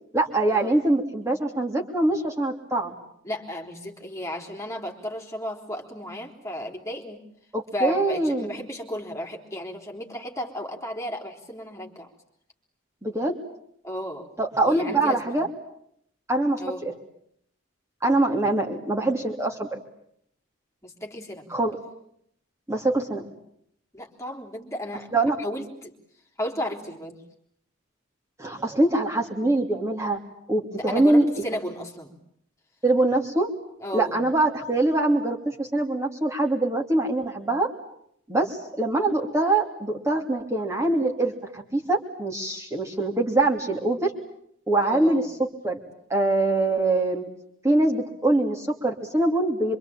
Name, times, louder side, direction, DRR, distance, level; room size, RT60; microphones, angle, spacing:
voice 1, 0.1-2.9 7.5-8.5 13.0-13.4 14.4-15.5 16.3-16.9 18.0-19.7 21.5-21.8 22.7-23.2 25.1-25.4 28.4-30.2 30.5-31.3 32.8-33.5 33.9-37.7 38.3-44.1 44.7-45.2 45.6-45.8 46.1-47.2 47.6-49.8, right 2 dB, 15° right, 0 dB, 3.0 m, -23 dB
voice 2, 3.2-7.2 7.7-12.1 13.8-14.3 14.6-15.4 16.6-16.8 20.8-21.4 23.9-25.1 25.4-25.9 26.4-27.2 30.7-32.2 33.8-34.2 44.8-45.2, equal, 15° left, 3 dB, 3.8 m, -34 dB
26.0 x 25.5 x 8.9 m, 0.71 s
head